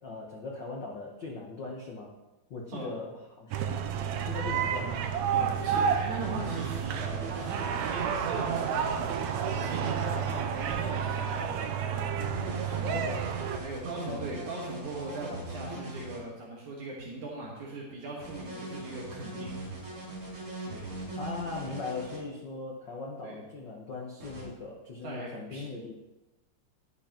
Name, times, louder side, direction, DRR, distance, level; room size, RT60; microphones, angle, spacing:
voice 1, 0.0-2.1 2.5-3.6 4.2-5.1 12.9-13.3 14.1-14.5 15.6-16.1 21.2-25.9, left 3 dB, 75° left, -2 dB, 1.0 m, -39 dB
sound 1, 3.5-13.6, right 7 dB, 85° right, 1.6 m, -31 dB
voice 2, 5.3-11.6 11.9-12.3 12.6-13.0 13.6-20.0 20.7-20.9 23.2-23.4 25.0-25.7, right 2 dB, 65° right, -4 dB, 2.9 m, -40 dB
sound 2, 6.2-10.2 12.2-16.2 18.2-22.2 24.2-24.4, right 3 dB, 40° right, 4.3 m, -40 dB
11.0 x 10.5 x 3.0 m, 1.0 s
omnidirectional pair, 3.9 m